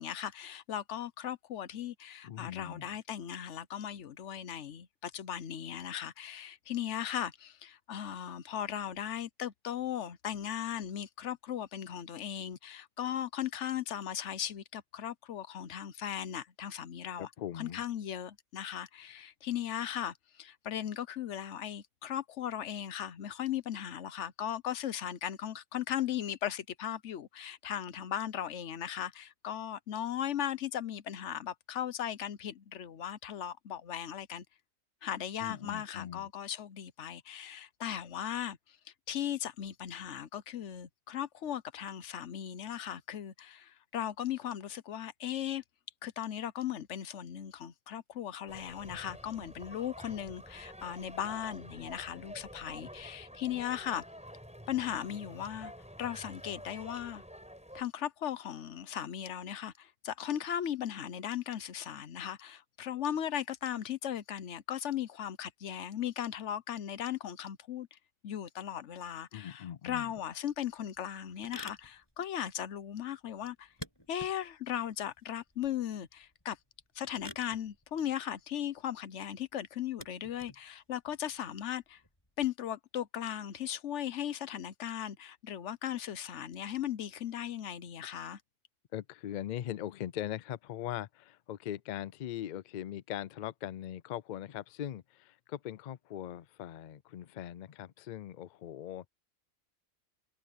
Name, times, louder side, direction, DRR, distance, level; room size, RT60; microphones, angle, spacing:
voice 1, 0.0-17.3 17.6-34.4 35.0-45.6 46.0-54.0 54.7-55.7 56.0-57.2 57.7-68.0 68.2-73.7 74.1-76.6 77.0-82.0 82.4-88.4, left 10 dB, 65° left, 1.1 m, -37 dB
voice 2, 2.2-3.0 17.2-17.8 35.4-36.3 69.3-70.1 88.9-99.1, left 11 dB, 85° left, 0.4 m, -40 dB
sound 1, 48.5-57.8, equal, 5° right, 5.6 m, -49 dB
sound 2, 70.2-82.5, left 1 dB, 20° left, 7.3 m, -53 dB
omnidirectional pair, 1.3 m